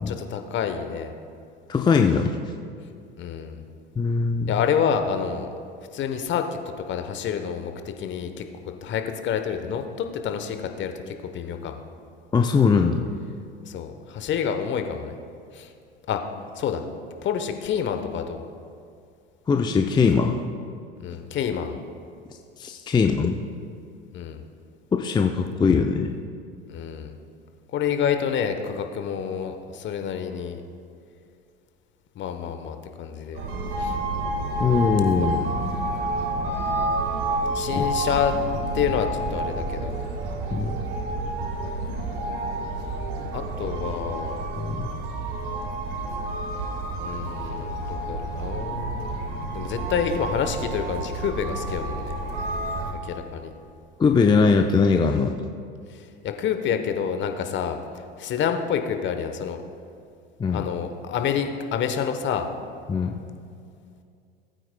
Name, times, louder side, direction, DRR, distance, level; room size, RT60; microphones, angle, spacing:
voice 1, 0.1-1.1 3.2-3.6 4.5-5.5 5.9-6.4 6.9-8.4 8.8-11.8 13.7-15.2 15.5-15.7 16.1-16.2 16.5-16.9 17.2-18.4 21.0-21.8 24.1-24.4 26.7-27.2 27.7-30.6 32.2-33.4 33.8-34.0 35.2-35.3 37.5-38.3 38.7-40.0 43.3-44.5 47.0-49.2 49.5-52.2 53.0-53.5 55.9-59.6 60.5-62.5, left 7 dB, 40° left, 6 dB, 1.0 m, -28 dB
voice 2, 1.7-2.4 4.0-4.5 12.3-13.1 19.5-20.4 22.6-23.4 24.9-26.1 34.6-35.4 37.8-37.9 40.5-40.8 44.5-44.9 54.0-55.3 60.4-60.7 62.9-63.1, left 5 dB, 15° left, 4 dB, 0.5 m, -21 dB
sound 1, 33.4-52.9, right 2 dB, 70° right, 1.6 m, -29 dB
19.0 x 8.9 x 2.2 m, 2.4 s
hypercardioid pair, 75°, 30 cm